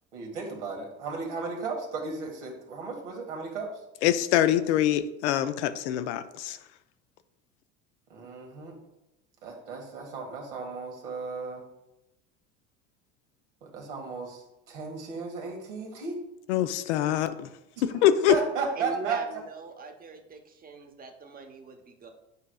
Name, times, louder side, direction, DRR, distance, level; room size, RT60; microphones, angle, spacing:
voice 1, 0.1-3.7 8.1-8.8 9.4-11.6 13.6-14.4 14.7-16.2 18.3-19.2, right 4 dB, 80° right, 1 dB, 1.6 m, -34 dB
voice 2, 4.0-6.6 16.5-17.5 17.8-18.3, left 11 dB, 75° left, 11 dB, 0.6 m, -24 dB
voice 3, 18.8-22.1, right 4 dB, 25° right, 5 dB, 1.0 m, -41 dB
9.5 x 4.7 x 2.3 m, 0.91 s
hypercardioid pair, 75°, 34 cm